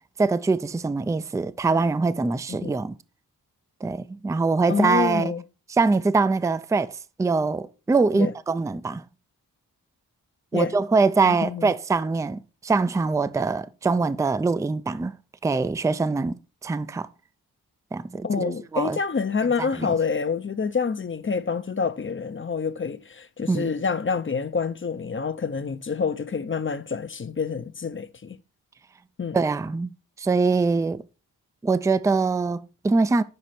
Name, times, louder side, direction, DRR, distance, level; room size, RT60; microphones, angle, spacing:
voice 1, 0.2-3.0 3.8-5.3 5.7-9.0 10.5-15.2 15.4-17.1 17.9-19.0 19.6-20.0 23.5-23.7 29.3-29.9 30.2-31.0 31.6-33.2, right 4 dB, 10° right, 0.4 m, -23 dB
voice 2, 4.7-5.4 8.1-8.3 10.5-10.7 11.2-11.7 18.2-28.4 29.2-29.4, left 5 dB, 30° left, 0.6 m, -27 dB
6.6 x 5.0 x 4.3 m
cardioid pair, 45°, 38 cm